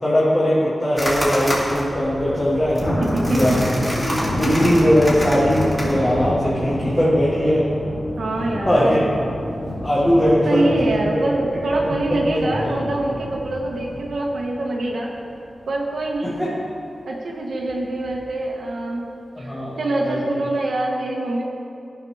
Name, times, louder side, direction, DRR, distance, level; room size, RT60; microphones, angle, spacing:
voice 1, 0.0-2.9 3.3-3.6 4.0-7.7 8.6-9.0 9.8-11.2 11.8-12.7 16.2-16.5 19.4-19.8 20.0-20.2, equal, 20° left, -9 dB, 1.6 m, -20 dB
sound 1, 1.0-5.9, equal, 5° left, 2.0 m, -28 dB
Thunder, 2.2-15.5 15.9-16.2 16.6-16.7 17.6-18.1, equal, 40° left, 2.2 m, -28 dB
voice 2, 3.0-3.6 8.2-9.1 10.2-15.1 15.7-16.4 17.1-19.1 19.4-21.4, right 2 dB, 85° right, -2 dB, 0.9 m, -24 dB
13.5 x 5.8 x 3.3 m, 2.5 s
wide cardioid pair, 115°, 0 cm